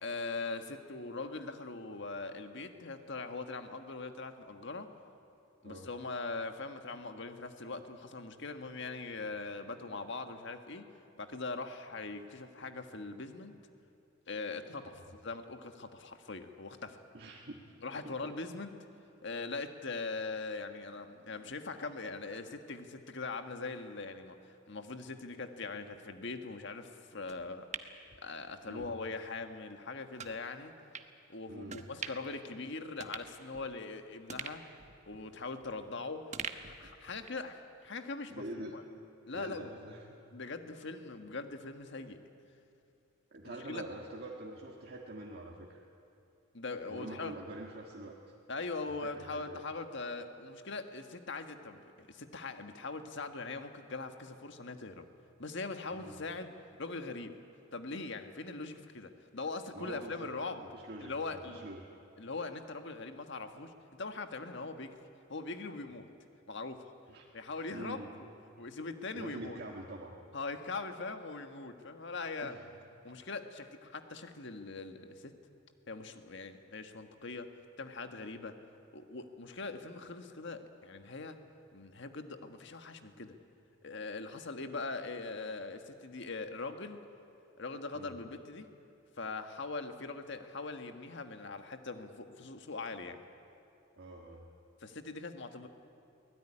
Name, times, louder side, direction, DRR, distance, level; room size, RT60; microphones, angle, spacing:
voice 1, 0.0-4.9 5.6-10.9 11.2-13.5 14.3-14.9 15.2-17.0 17.8-18.7 19.2-27.7 28.2-30.7 31.3-34.6 35.1-36.3 36.6-38.8 39.3-39.7 40.3-42.2 43.4-43.8 46.5-47.3 48.5-55.0 55.4-56.5 56.8-57.3 57.7-60.6 61.0-61.7 62.2-63.7 64.0-64.9 65.3-66.1 66.5-66.8 67.3-68.3 68.6-69.6 70.3-72.5 73.0-75.3 75.9-77.5 77.8-78.6 78.9-81.4 81.7-83.3 83.8-87.0 87.6-88.7 89.2-93.2 94.8-95.7, left 3 dB, 65° left, 7 dB, 1.6 m, -41 dB
voice 2, 17.1-17.7 18.2-18.3 28.7-29.0 31.5-31.8 38.3-38.8 39.3-40.1 43.3-45.8 46.8-48.2 49.0-49.6 55.9-56.1 59.7-60.3 60.7-61.9 67.1-67.3 67.7-68.1 69.1-70.2 72.4-72.6 87.9-88.1 94.0-94.5, right 1 dB, 55° right, -1 dB, 1.8 m, -45 dB
sound 1, 27.3-28.9 29.3-29.4 30.2-30.4 30.9-31.1 31.7-32.4 32.7-32.8 33.0-33.9 34.3-35.9 36.3-37.5 37.8-37.9, right 6 dB, 35° right, 1.1 m, -45 dB
23.0 x 17.5 x 10.0 m, 2.7 s
head